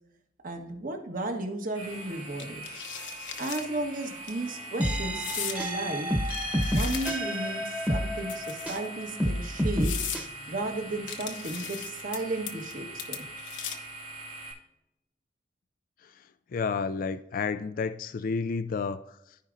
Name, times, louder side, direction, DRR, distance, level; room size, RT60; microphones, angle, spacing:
voice 1, 0.4-2.7 3.4-6.1 6.7-10.0 10.4-13.2, right 2 dB, 50° right, 3 dB, 1.4 m, -34 dB
sound 1, 1.7-14.5, right 1 dB, 70° right, 3.3 m, -43 dB
sound 2, 2.4-3.7 4.1-4.3 5.2-5.6 6.2-7.4 8.2-8.9 9.4-9.5 9.8-10.2 11.1-12.2 12.5-12.7 13.0-13.9, left 8 dB, 85° left, 1.0 m, -37 dB
sound 3, 4.8-8.9 9.2-10.3, equal, 10° right, 1.1 m, -29 dB
voice 2, 16.0-19.4, left 5 dB, 50° left, 12 dB, 0.3 m, -31 dB
14.5 x 5.0 x 2.6 m, 0.82 s
head